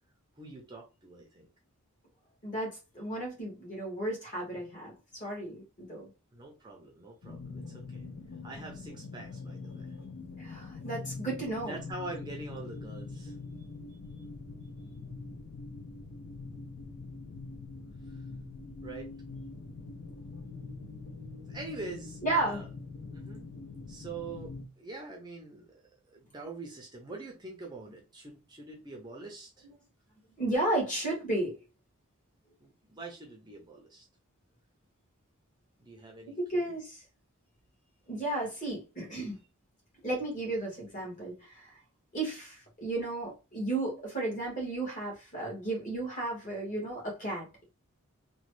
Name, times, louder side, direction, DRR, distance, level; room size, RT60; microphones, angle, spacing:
voice 1, 0.4-1.5 6.3-8.1 8.4-9.9 11.7-13.3 14.1-14.2 18.1-18.2 18.8-19.1 21.5-22.7 23.1-23.5 23.9-25.8 26.1-29.7 32.6-34.1 35.8-36.7, right 3 dB, 20° right, 0.5 m, -44 dB
voice 2, 2.4-6.1 10.4-11.8 22.2-22.6 30.4-31.6 36.3-37.0 38.1-39.4 40.0-41.8 42.1-47.6, right 2 dB, 35° left, 1.4 m, -34 dB
sound 1, 7.2-24.6, left 3 dB, 60° left, 0.5 m, -43 dB
3.0 x 2.2 x 3.1 m
head